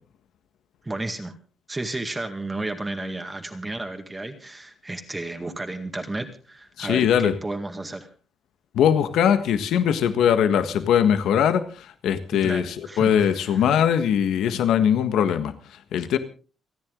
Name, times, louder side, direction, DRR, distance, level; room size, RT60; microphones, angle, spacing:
voice 1, 0.8-1.4 1.7-8.1 12.3-13.7, right 2 dB, 15° right, 5 dB, 2.0 m, -33 dB
voice 2, 6.8-7.3 8.7-15.5 15.9-16.2, left 8 dB, 85° left, 10 dB, 1.5 m, -21 dB
29.0 x 10.5 x 3.8 m, 0.38 s
cardioid pair, 125°, 0 cm